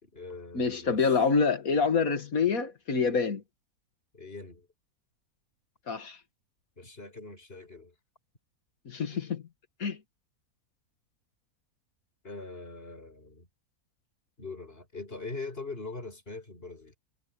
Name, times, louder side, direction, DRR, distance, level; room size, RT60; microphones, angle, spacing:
voice 1, 0.0-1.2 4.1-4.7 6.8-7.9 9.1-9.3 12.2-13.5 14.4-17.0, left 3 dB, 40° left, 5.7 m, -42 dB
voice 2, 0.5-3.4 5.9-6.2 8.9-9.4 9.8-10.0, left 5 dB, 65° left, 2.3 m, -26 dB
omnidirectional pair, 1.6 m